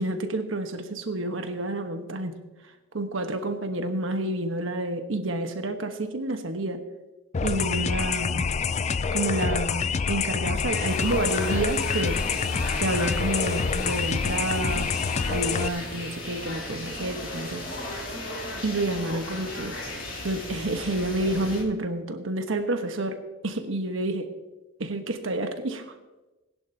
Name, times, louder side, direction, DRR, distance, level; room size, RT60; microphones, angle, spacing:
voice 1, 0.0-2.4 2.9-6.8 7.4-8.5 9.1-12.2 12.8-14.9 15.3-17.6 18.6-19.8 20.2-24.3 24.8-25.9, right 2 dB, 70° right, 6 dB, 1.3 m, -29 dB
sound 1, 7.3-15.7, left 5 dB, 35° left, 0.4 m, -27 dB
sound 2, 10.7-21.6, left 1 dB, 70° left, 3.1 m, -36 dB
20.0 x 11.0 x 2.8 m, 1.1 s
head